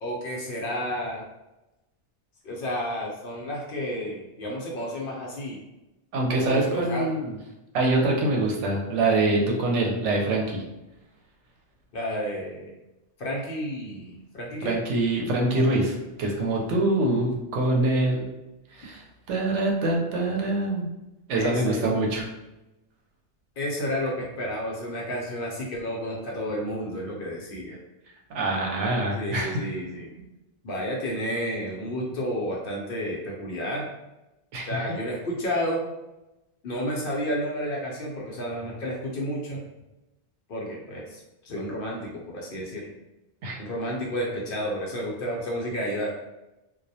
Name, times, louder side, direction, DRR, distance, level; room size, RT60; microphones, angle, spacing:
voice 1, 0.0-1.2 2.4-5.6 6.3-7.1 11.9-12.7 13.2-14.8 21.3-22.0 23.6-27.8 29.2-30.1 30.6-33.8 34.7-35.8 36.6-39.6 40.5-42.9 43.6-46.2, equal, 60° left, -2 dB, 0.6 m, -31 dB
voice 2, 6.1-7.4 7.7-10.6 14.6-18.3 18.7-20.9 21.3-22.3 28.3-29.6 34.5-34.9 43.4-43.6, right 2 dB, 85° right, 0 dB, 0.9 m, -25 dB
2.2 x 2.1 x 2.6 m, 0.97 s
omnidirectional pair, 1.2 m